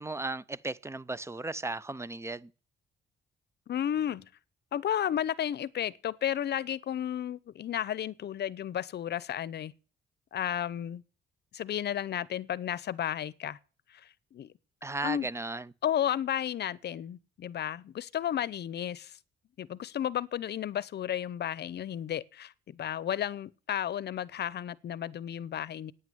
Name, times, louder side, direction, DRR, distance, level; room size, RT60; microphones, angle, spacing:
voice 1, 0.0-2.5 14.8-15.7, right 2 dB, 15° right, 0.6 m, -36 dB
voice 2, 3.7-4.3 4.7-9.7 10.3-11.0 11.5-13.6 13.9-14.5 15.0-15.3 15.8-19.2 19.6-25.9, left 10 dB, 55° left, 0.8 m, -33 dB
9.4 x 9.3 x 9.2 m
cardioid pair, 90°, 20 cm